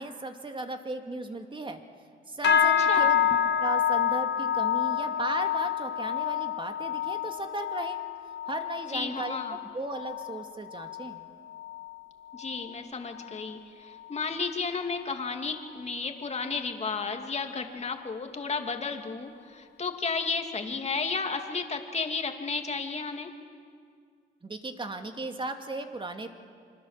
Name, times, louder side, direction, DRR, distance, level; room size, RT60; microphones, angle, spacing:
voice 1, 0.0-1.8 2.3-8.0 8.5-11.2 24.4-26.3, right 2 dB, 25° right, 5 dB, 2.4 m, -36 dB
sound 1, 2.4-12.0 12.3-12.7 13.1-13.4 14.0-14.1, left 9 dB, 65° left, 2.5 m, -28 dB
voice 2, 2.8-3.1 8.9-9.6 12.3-23.3, left 4 dB, 35° left, 4 dB, 2.7 m, -33 dB
26.0 x 24.5 x 7.5 m, 2.2 s
cardioid pair, 90°, 20 cm